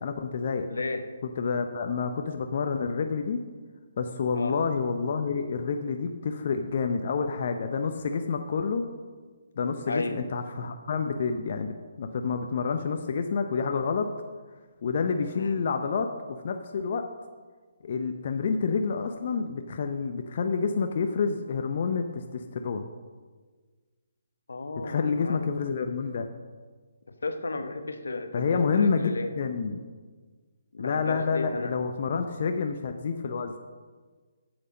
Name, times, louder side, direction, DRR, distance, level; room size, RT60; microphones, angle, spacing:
voice 1, 0.0-0.7 1.2-3.4 4.0-8.8 9.6-14.1 14.8-16.1 16.4-17.0 17.8-22.8 24.8-26.3 28.3-29.8 30.8-33.5, left 5 dB, 50° left, 6 dB, 0.6 m, -28 dB
voice 2, 0.7-1.1 4.3-4.5 9.9-10.1 15.3-15.6 24.5-25.5 27.2-29.3 30.7-31.8, left 3 dB, 80° left, 8 dB, 0.9 m, -33 dB
7.9 x 7.8 x 5.3 m, 1.5 s
hypercardioid pair, 150°, 0 cm